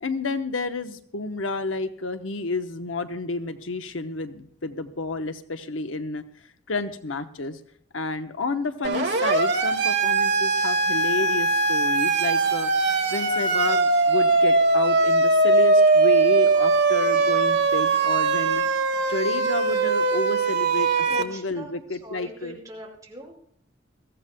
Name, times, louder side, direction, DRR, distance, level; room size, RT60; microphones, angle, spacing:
voice 1, 0.0-6.2 6.7-7.6 7.9-12.7 13.1-18.6 19.1-22.6, left 3 dB, 90° left, 8 dB, 1.0 m, -30 dB
Siren, 8.8-21.2, right 3 dB, 60° right, 1.7 m, -21 dB
voice 2, 21.1-23.4, right 1 dB, 20° right, -2 dB, 5.4 m, -42 dB
22.5 x 15.0 x 2.2 m, 0.65 s
head